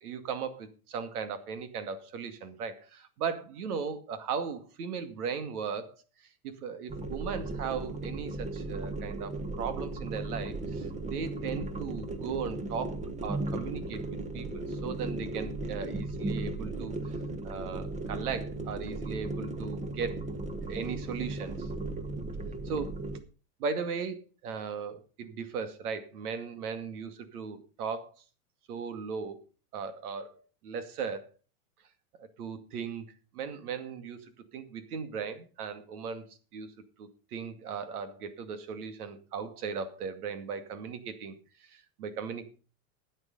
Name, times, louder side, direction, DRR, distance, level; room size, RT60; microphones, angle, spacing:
voice 1, 0.0-5.9 6.4-17.0 17.4-20.2 20.7-21.7 22.6-23.0 23.6-28.2 28.7-29.4 29.7-30.3 30.6-31.3 32.2-33.1 33.3-36.7 37.0-42.5, right 6 dB, 85° right, 10 dB, 2.4 m, -37 dB
sound 1, 6.9-23.2, right 2 dB, 15° right, 1.2 m, -36 dB
13.0 x 9.1 x 5.4 m, 0.35 s
supercardioid pair, 135°, 44 cm